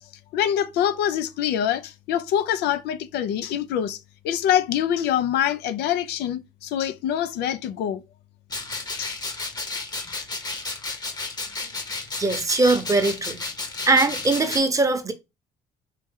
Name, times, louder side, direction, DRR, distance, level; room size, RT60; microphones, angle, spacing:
voice 1, 0.3-4.0 4.2-8.0 9.0-9.1, left 10 dB, 80° left, 0.5 m, -25 dB
sound 1, 8.5-14.6, left 3 dB, 25° left, 0.9 m, -32 dB
voice 2, 12.2-13.4 13.9-15.1, right 3 dB, 20° right, 0.8 m, -21 dB
4.4 x 3.1 x 3.6 m
cardioid pair, 110°, 17 cm